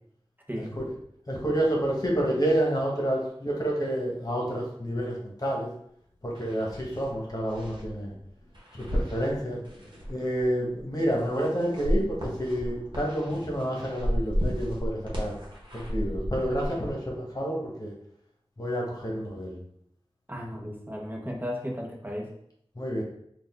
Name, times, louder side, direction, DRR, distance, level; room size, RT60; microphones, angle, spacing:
voice 1, 1.3-5.7 6.2-8.1 8.7-9.6 10.1-15.4 15.7-17.9 18.6-19.5 22.8-23.0, right 1 dB, 40° left, -2 dB, 1.3 m, -29 dB
sound 1, 6.0-6.1 6.3-16.9, equal, 50° right, 1.3 m, -34 dB
voice 2, 20.3-22.3, equal, 20° right, -1 dB, 0.9 m, -35 dB
4.1 x 2.5 x 3.7 m, 0.71 s
wide cardioid pair, 45°, 10 cm